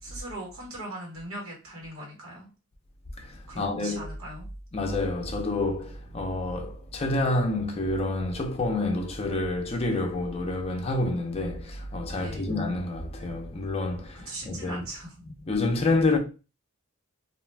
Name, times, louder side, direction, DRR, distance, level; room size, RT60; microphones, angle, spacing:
voice 1, 0.0-2.5 3.5-4.5 12.2-12.5 14.1-15.1, right 1 dB, 70° right, 1.3 m, -39 dB
voice 2, 3.2-4.1 4.7-14.9 15.2-16.2, left 2 dB, 30° left, 0.5 m, -28 dB
2.4 x 2.1 x 3.2 m
head